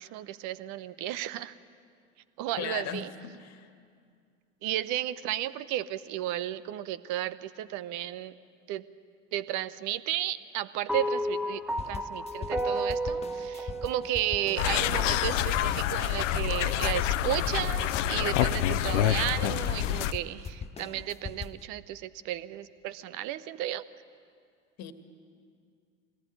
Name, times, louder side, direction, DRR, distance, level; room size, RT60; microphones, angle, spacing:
voice 1, 0.0-1.5 2.4-3.1 4.6-8.3 8.7-8.9 9.3-23.8, right 13 dB, 50° right, 16 dB, 0.9 m, -33 dB
voice 2, 2.6-3.7 24.8-24.9, left 8 dB, 40° left, 9 dB, 1.8 m, -37 dB
sound 1, 10.9-15.3, right 1 dB, 5° right, 1.1 m, -33 dB
sound 2, 11.8-21.6, left 6 dB, 15° left, 0.6 m, -41 dB
sound 3, 14.6-20.1, left 12 dB, 70° left, 0.8 m, -27 dB
23.0 x 19.0 x 9.3 m, 2.2 s
figure-of-eight pair, 70°, 38 cm